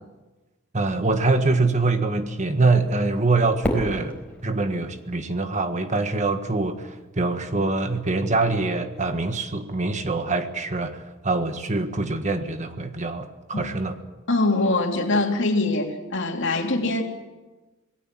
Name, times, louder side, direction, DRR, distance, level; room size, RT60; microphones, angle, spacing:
voice 1, 0.7-4.2 4.4-14.0, right 3 dB, 35° right, 8 dB, 1.5 m, -24 dB
Fireworks, 3.6-5.9, equal, 5° left, 4.3 m, -31 dB
voice 2, 14.3-17.0, left 2 dB, 65° left, 3 dB, 3.1 m, -23 dB
26.5 x 19.0 x 7.6 m, 1.2 s
head